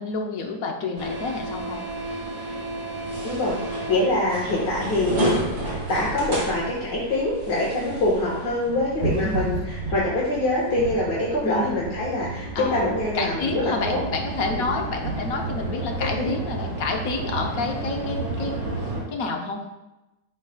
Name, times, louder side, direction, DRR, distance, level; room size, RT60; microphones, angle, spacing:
voice 1, 0.0-1.8 9.2-9.6 11.4-11.8 12.5-12.8 13.1-18.5 19.1-19.6, left 3 dB, 60° left, 2 dB, 1.1 m, -29 dB
sound 1, 1.0-19.0, right 2 dB, 45° right, 2.8 m, -31 dB
voice 2, 3.2-3.6 3.9-5.3 5.9-14.0 14.5-14.7 16.0-16.3, left 1 dB, 90° left, -7 dB, 2.0 m, -24 dB
11.0 x 4.0 x 2.3 m, 0.99 s
omnidirectional pair, 1.9 m